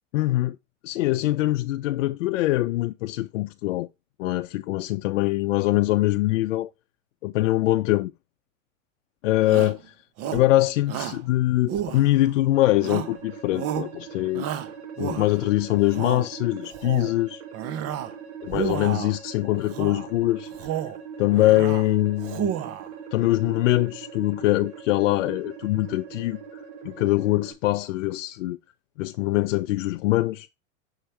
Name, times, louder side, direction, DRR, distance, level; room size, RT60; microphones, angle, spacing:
voice 1, 0.1-0.6 0.8-3.9 4.2-6.7 7.2-8.1 9.2-9.9 10.3-14.5 15.0-17.4 18.4-20.8 21.2-22.5 23.1-26.4 26.8-28.6 29.0-30.5, left 17 dB, 75° left, 0.6 m, -23 dB
Shout, 9.4-9.8 10.2-10.5 10.9-11.2 11.7-12.4 12.8-13.2 13.5-13.9 14.3-15.5 15.8-16.3 16.7-17.1 17.5-18.1 18.5-19.2 19.7-20.1 20.5-21.0 21.3-21.9 22.2-22.9, right 10 dB, 40° right, 0.9 m, -31 dB
sound 1, 12.5-27.5, right 7 dB, 70° right, 2.2 m, -41 dB
6.5 x 3.3 x 4.4 m
hypercardioid pair, 110°, 38 cm